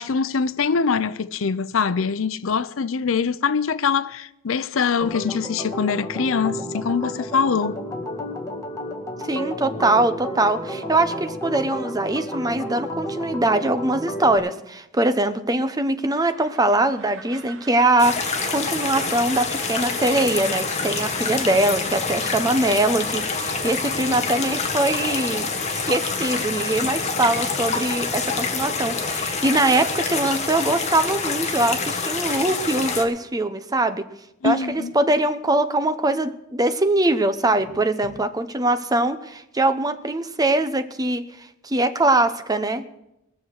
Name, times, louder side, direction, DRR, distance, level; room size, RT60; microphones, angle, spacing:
voice 1, 0.0-7.8 34.4-34.9, left 5 dB, 90° left, 0.6 m, -23 dB
Organ, 5.0-14.4, equal, 15° left, 2.0 m, -32 dB
voice 2, 9.2-18.2 18.5-34.1 34.4-41.3 41.6-42.8, right 2 dB, 20° right, 0.8 m, -22 dB
Train, 16.1-22.2, right 4 dB, 75° right, 1.4 m, -44 dB
sound 1, 18.0-33.0, left 4 dB, 35° left, 1.5 m, -26 dB
21.0 x 7.1 x 6.5 m
head